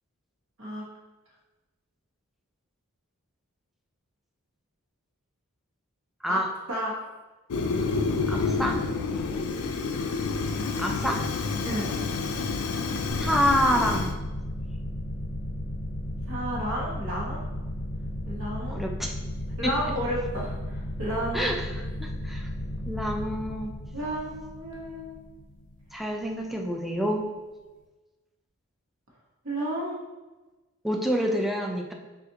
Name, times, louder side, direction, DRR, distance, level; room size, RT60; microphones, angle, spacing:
Fire, 7.5-14.1, left 4 dB, 85° left, 0.4 m, -29 dB
voice 1, 8.3-8.8 10.8-11.2 13.2-14.1 18.7-19.1 19.6-19.7 21.3-22.5 22.9-23.7 25.9-27.3 30.8-31.9, equal, ahead, 1 dB, 0.3 m, -27 dB
sound 1, 13.1-26.3, left 1 dB, 35° left, 0.7 m, -35 dB
voice 2, 16.3-17.4 18.3-18.8 19.6-21.5 23.9-25.3 29.4-30.0, equal, 60° right, -4 dB, 1.1 m, -32 dB
6.4 x 2.5 x 2.8 m, 1.2 s
head